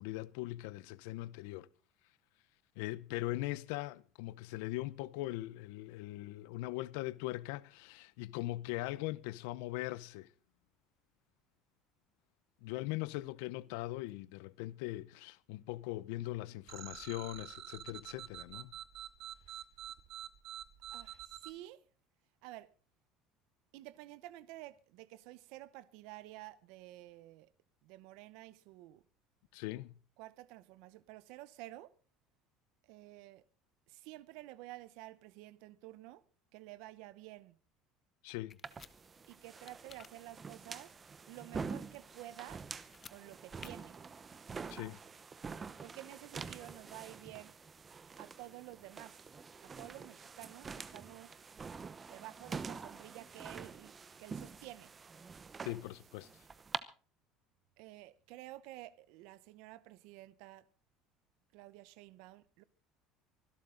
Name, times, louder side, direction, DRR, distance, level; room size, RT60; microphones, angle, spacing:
voice 1, 0.0-1.7 2.8-10.3 12.6-18.7 29.5-29.9 38.2-38.6 44.7-45.0 55.6-56.3, left 17 dB, 85° left, 0.7 m, -40 dB
sound 1, 16.7-21.5, right 11 dB, 40° right, 1.1 m, -47 dB
voice 2, 20.9-21.8 22.4-22.7 23.7-27.5 27.8-29.0 30.2-31.9 32.8-33.4 33.9-36.2 36.5-37.6 39.3-40.9 41.3-42.6 43.1-44.0 45.8-47.5 48.2-49.2 49.6-51.4 52.1-53.9 54.2-54.9 57.8-60.6 61.5-62.6, right 16 dB, 65° right, 0.9 m, -51 dB
sound 2, 38.5-38.9 39.7-40.1 42.8-43.2 43.6-43.7, left 6 dB, 20° left, 0.7 m, -53 dB
sound 3, 38.6-56.8, right 5 dB, 15° right, 0.8 m, -47 dB
24.5 x 12.0 x 3.8 m
cardioid pair, 175°, 0 cm